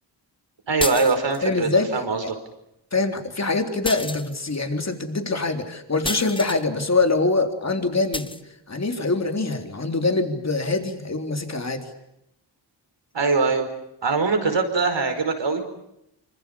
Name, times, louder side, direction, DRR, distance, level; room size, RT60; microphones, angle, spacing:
voice 1, 0.7-2.2 13.1-13.7 14.0-15.7, right 4 dB, 70° right, 6 dB, 5.0 m, -22 dB
sound 1, 0.8-1.5 3.8-4.6 6.0-6.6 8.1-8.4, left 2 dB, 10° left, 1.1 m, -30 dB
voice 2, 1.4-1.9 2.2-2.3 2.9-8.3 8.7-11.9, left 3 dB, 35° left, 5 dB, 3.8 m, -24 dB
27.0 x 25.5 x 7.0 m, 0.82 s
wide cardioid pair, 95°, 45 cm